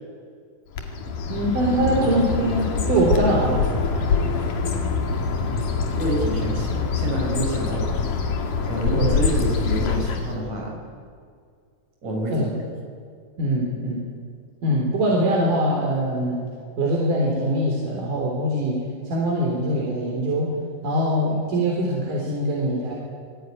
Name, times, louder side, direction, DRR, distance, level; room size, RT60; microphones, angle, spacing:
Bird, 0.7-10.4, left 4 dB, 85° left, 3.9 m, -24 dB
voice 1, 1.3-3.6 8.9-9.1 12.3-12.4 13.4-14.1 14.6-16.4 16.8-18.8 19.1-20.5 20.8-22.9, right 1 dB, 90° right, -2 dB, 5.3 m, -23 dB
voice 2, 5.5-7.9 8.7-10.8 12.0-12.5, right 1 dB, 65° right, -1 dB, 6.7 m, -28 dB
28.0 x 20.0 x 9.7 m, 2.1 s
omnidirectional pair, 3.6 m